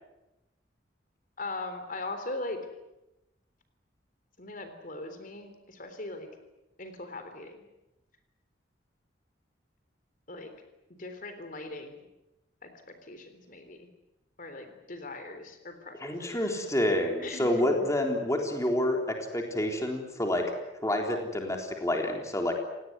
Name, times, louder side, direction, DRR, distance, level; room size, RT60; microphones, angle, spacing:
voice 1, 1.4-2.7 4.4-6.3 6.8-7.6 10.3-10.5 11.0-12.1 12.6-13.9 14.4-16.4 17.2-17.6, left 2 dB, 45° left, 8 dB, 3.5 m, -40 dB
voice 2, 16.0-20.5 20.8-22.5, left 1 dB, 15° left, 2 dB, 3.8 m, -28 dB
29.5 x 18.5 x 9.5 m, 0.96 s
head